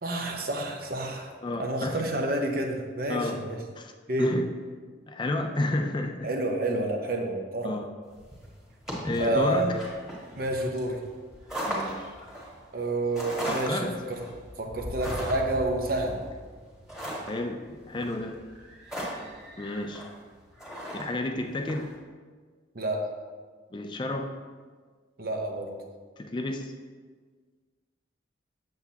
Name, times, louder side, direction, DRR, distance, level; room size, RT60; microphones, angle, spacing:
voice 1, 0.0-1.3 1.6-3.6 4.1-4.3 6.2-7.7 9.2-9.7 10.3-11.0 12.7-14.2 14.6-16.2 22.7-23.1 25.2-25.8, right 1 dB, 50° right, 3 dB, 0.8 m, -29 dB
voice 2, 1.4-2.0 3.1-3.5 3.8-3.9 4.2-4.6 5.1-6.3 7.6-7.9 8.9-9.8 11.7-12.1 13.5-14.0 17.3-18.4 19.6-20.1 20.9-22.0 23.7-24.4 26.2-26.7, left 2 dB, 25° left, 5 dB, 0.3 m, -31 dB
sound 1, 8.1-21.9, right 1 dB, 5° right, 1.5 m, -38 dB
8.0 x 6.9 x 2.8 m, 1.5 s
head